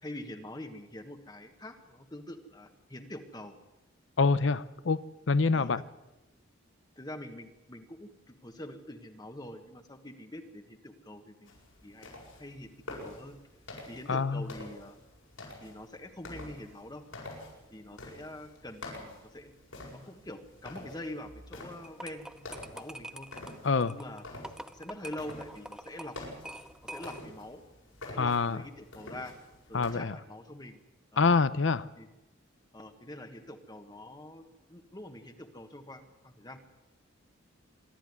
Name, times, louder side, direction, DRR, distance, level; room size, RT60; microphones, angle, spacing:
voice 1, 0.0-3.6 5.5-5.8 7.0-11.6 11.8-12.1 12.4-13.4 13.9-15.0 15.6-17.0 17.7-18.9 19.3-19.5 19.9-23.3 23.9-24.2 24.7-26.2 26.8-27.6 28.1-29.3 29.7-30.8 31.1-31.4 32.0-32.1 32.7-36.6, left 1 dB, 20° left, 1.4 m, -45 dB
voice 2, 4.2-5.0 5.3-5.8 14.1-14.4 23.6-24.0 28.2-28.6 29.7-30.1 31.2-31.9, left 4 dB, 65° left, 0.7 m, -26 dB
sound 1, 11.5-29.9, left 2 dB, 85° left, 7.9 m, -48 dB
sound 2, 21.8-27.4, right 1 dB, 5° right, 0.7 m, -45 dB
25.5 x 12.5 x 9.7 m
head